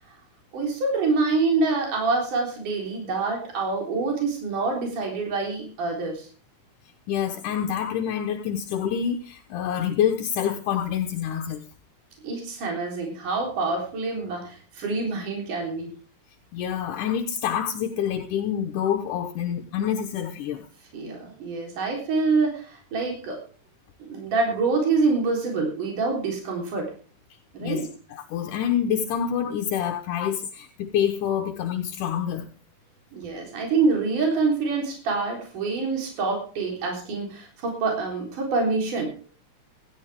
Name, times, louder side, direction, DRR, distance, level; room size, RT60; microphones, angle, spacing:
voice 1, 0.5-6.3 12.2-15.9 20.9-23.4 24.0-26.9 27.5-27.9 33.1-39.3, right 3 dB, 70° right, 5.3 m, -26 dB
voice 2, 7.1-11.7 16.5-20.7 27.6-32.5, left 9 dB, 75° left, 2.5 m, -27 dB
16.5 x 13.0 x 3.5 m
omnidirectional pair, 3.9 m